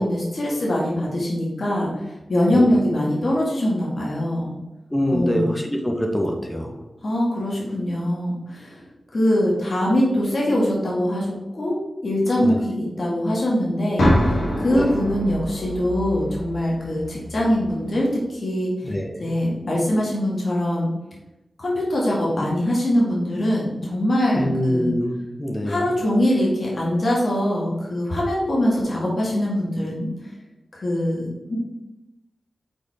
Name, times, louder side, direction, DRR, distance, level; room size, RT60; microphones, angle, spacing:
voice 1, 0.0-4.5 5.1-5.5 7.0-8.8 9.1-18.7 19.2-20.9 21.6-24.9 25.7-30.1 30.7-31.6, left 1 dB, 60° left, -4 dB, 2.0 m, -23 dB
voice 2, 4.9-6.8 12.4-12.6 14.7-14.9 18.8-19.3 24.3-25.9, equal, 20° left, 2 dB, 1.3 m, -24 dB
sound 1, 14.0-17.9, equal, 90° left, 2.0 m, -25 dB
5.5 x 4.2 x 4.2 m, 0.98 s
cardioid pair, 45°, 0 cm